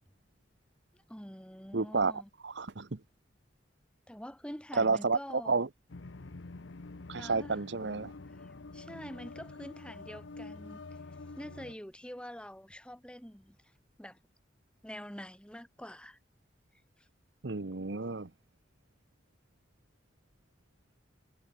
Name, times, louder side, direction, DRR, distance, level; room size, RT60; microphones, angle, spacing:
voice 1, 0.9-2.3 4.1-5.7 7.2-7.6 8.4-10.8 11.1-13.6 14.0-14.2 14.8-16.2, equal, 5° left, 4.1 m, -46 dB
voice 2, 1.7-3.0 4.7-5.7 7.1-8.1 17.4-18.3, right 4 dB, 70° right, 1.0 m, -31 dB
sound 1, 5.9-11.7, left 3 dB, 85° left, 0.9 m, -47 dB
head